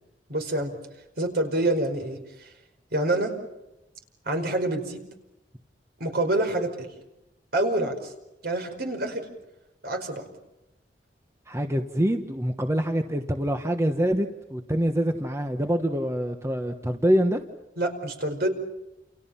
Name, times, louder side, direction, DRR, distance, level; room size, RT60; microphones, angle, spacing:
voice 1, 0.3-0.7 1.2-2.2 2.9-3.4 4.2-5.0 6.0-6.9 7.5-8.1 8.4-9.3 9.8-10.3 17.8-18.5, right 1 dB, 65° right, 5 dB, 5.1 m, -26 dB
voice 2, 11.5-17.4, equal, 15° right, 5 dB, 1.2 m, -25 dB
29.5 x 29.0 x 5.7 m, 0.93 s
head